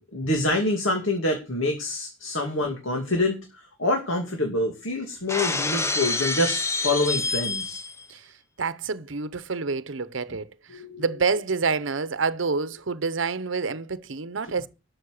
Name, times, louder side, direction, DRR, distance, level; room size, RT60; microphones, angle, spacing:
voice 1, 0.0-3.4 3.8-7.8 10.7-11.0, left 2 dB, 80° left, 2.5 m, -26 dB
Shatter, 5.3-8.1, left 3 dB, 15° left, 0.9 m, -27 dB
voice 2, 8.6-14.7, right 4 dB, 70° right, 0.8 m, -28 dB
12.5 x 6.3 x 6.5 m
head